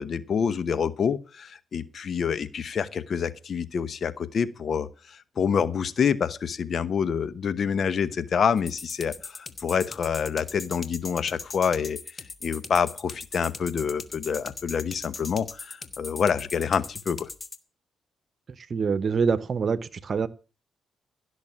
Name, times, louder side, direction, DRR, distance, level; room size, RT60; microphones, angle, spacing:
voice 1, 0.0-12.0 12.4-17.3, left 7 dB, 60° left, 1.0 m, -27 dB
sound 1, 8.6-17.6, left 4 dB, 40° left, 1.5 m, -39 dB
voice 2, 18.7-20.3, right 5 dB, 50° right, 1.0 m, -25 dB
16.0 x 6.5 x 7.2 m
supercardioid pair, 60°, 0 cm